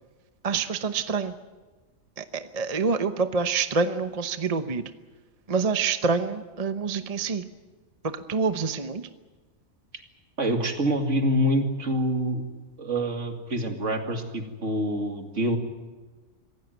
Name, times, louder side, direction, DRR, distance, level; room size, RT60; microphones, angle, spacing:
voice 1, 0.4-1.4 2.2-4.9 5.5-7.5 8.0-9.1, right 5 dB, 30° right, 10 dB, 0.9 m, -27 dB
voice 2, 10.4-12.4 12.8-15.6, equal, 60° right, 5 dB, 2.6 m, -26 dB
26.0 x 16.0 x 9.3 m, 1.3 s
omnidirectional pair, 1.4 m